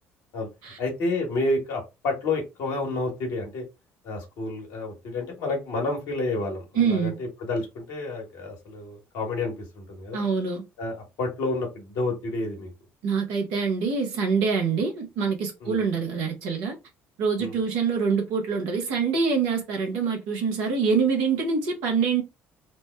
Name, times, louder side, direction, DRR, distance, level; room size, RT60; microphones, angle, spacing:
voice 1, 0.8-3.6 4.0-10.2 10.8-12.7 15.6-15.8 17.4-17.6, left 2 dB, 60° left, 1.3 m, -30 dB
voice 2, 6.8-7.1 10.1-10.6 13.0-16.8 17.2-22.2, right 5 dB, 70° right, 0.9 m, -25 dB
3.3 x 2.1 x 3.2 m
figure-of-eight pair, 50°, 7 cm